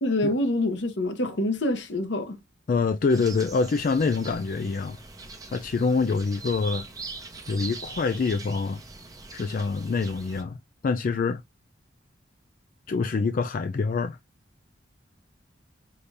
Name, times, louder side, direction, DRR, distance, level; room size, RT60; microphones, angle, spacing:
voice 1, 0.0-2.4, left 1 dB, 80° left, 1.1 m, -26 dB
voice 2, 2.7-5.0 5.5-6.9 7.5-8.8 9.3-10.6 10.8-11.4 12.9-14.2, left 4 dB, 50° left, 0.3 m, -25 dB
sound 1, 3.1-10.4, right 3 dB, 20° right, 1.0 m, -42 dB
5.2 x 2.8 x 3.3 m
head